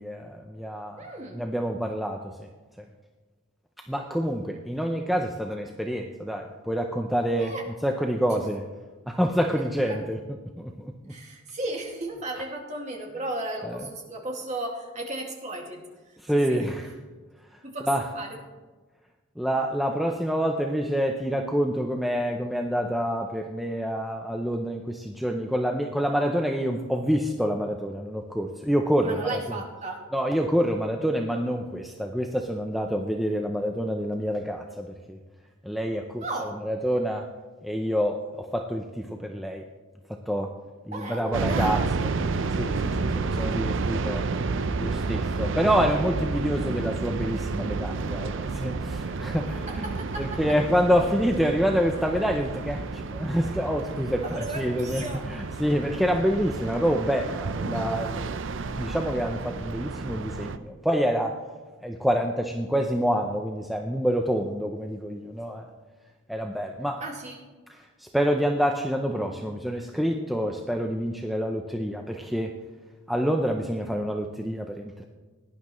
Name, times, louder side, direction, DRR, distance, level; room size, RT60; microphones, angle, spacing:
voice 1, 0.0-1.0 1.3-2.2 3.9-7.6 7.8-8.6 9.1-10.2 10.6-10.9 13.6-13.9 16.2-16.9 17.5-17.6 17.9-18.1 19.4-29.4 30.1-35.2 35.6-37.3 37.6-39.7 40.3-40.5 40.9-42.1 42.5-44.3 44.8-58.3 58.7-61.4 61.8-65.7 66.3-67.0 67.7-72.5 73.1-75.1, equal, ahead, 2 dB, 0.6 m, -27 dB
voice 2, 1.0-1.4 7.4-7.6 9.9-10.0 11.1-15.8 16.5-16.7 17.6-17.9 18.1-18.3 29.0-30.0 36.2-36.5 40.9-42.1 49.7-50.4 54.2-55.2 67.0-67.4, right 2 dB, 35° right, 0 dB, 2.1 m, -35 dB
sound 1, 41.3-60.6, right 4 dB, 60° right, 0.5 m, -30 dB
17.5 x 10.5 x 3.1 m, 1.3 s
head